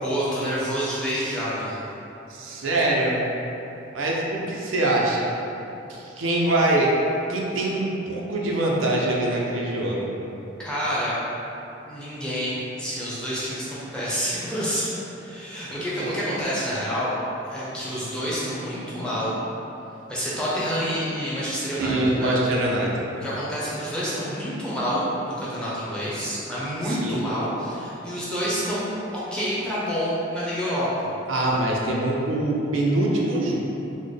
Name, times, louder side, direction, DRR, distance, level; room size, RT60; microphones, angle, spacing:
voice 1, 0.0-1.8 10.6-11.1 11.9-17.1 17.5-19.3 20.1-22.4 23.1-28.9 29.3-31.1, equal, 5° left, -10 dB, 0.6 m, -28 dB
voice 2, 2.3-3.3 3.9-5.3 5.9-6.9 7.3-10.1 16.0-16.1 21.8-23.0 26.8-27.2 31.3-33.6, right 1 dB, 80° right, -2 dB, 0.5 m, -24 dB
4.0 x 2.1 x 3.2 m, 3.0 s
head